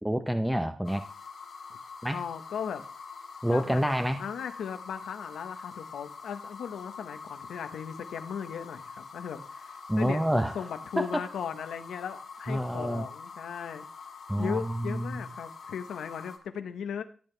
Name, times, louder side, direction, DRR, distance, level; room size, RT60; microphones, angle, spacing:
voice 1, 0.0-1.0 2.0-2.2 3.4-4.2 9.9-10.5 11.0-11.2 12.5-13.1 14.3-15.2, equal, 5° right, 7 dB, 0.9 m, -28 dB
sound 1, 0.8-16.4, left 5 dB, 65° left, 2.4 m, -45 dB
voice 2, 2.1-2.8 3.5-13.8 14.4-17.0, left 7 dB, 90° left, 8 dB, 1.2 m, -37 dB
15.0 x 8.2 x 3.4 m, 0.40 s
cardioid pair, 75°, 0 cm